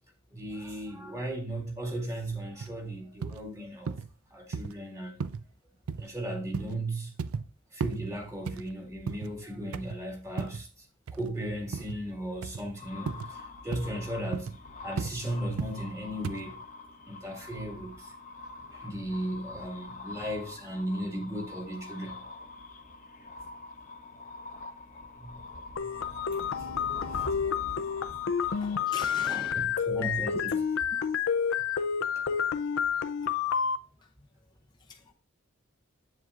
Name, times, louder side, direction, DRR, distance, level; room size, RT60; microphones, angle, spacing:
voice 1, 0.3-3.9 4.3-5.2 6.0-7.1 7.7-10.9 11.1-16.7 17.1-18.1 18.7-22.2 25.2-25.4 25.8-25.9 26.6-27.8 28.6-30.6 32.2-32.3, right 1 dB, 15° right, 1.8 m, -36 dB
sound 1, 2.6-2.7 3.2-3.4 3.9-4.1 4.5-4.7 5.2-5.4 5.9-6.1 6.5-6.8 7.2-7.5 7.8-8.0 8.5-9.3 9.7-10.0 10.4-10.6 11.1-11.3 11.7-12.0 12.4-12.6 13.1-13.3 13.7-13.9 14.3-14.6 15.0-15.2 15.6-15.8 16.2-16.4, right 5 dB, 90° right, 0.4 m, -35 dB
sound 2, 12.8-29.8, left 3 dB, 40° left, 0.9 m, -45 dB
sound 3, 25.8-33.8, left 7 dB, 65° left, 0.5 m, -29 dB
voice 2, 28.6-29.6 30.0-30.1 34.9-35.1, left 3 dB, 20° left, 0.6 m, -41 dB
7.9 x 7.5 x 2.5 m
head